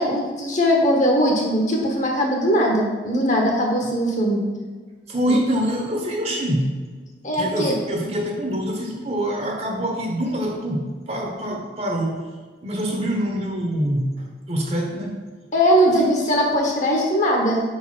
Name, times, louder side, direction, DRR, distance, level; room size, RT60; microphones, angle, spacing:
voice 1, 0.0-4.4 5.3-5.4 7.2-7.7 15.5-17.6, equal, 40° left, 0 dB, 1.3 m, -20 dB
voice 2, 5.1-6.7 7.4-12.3 12.6-15.2 15.9-16.1, equal, 35° right, 1 dB, 1.1 m, -25 dB
5.2 x 4.7 x 6.0 m, 1.5 s
head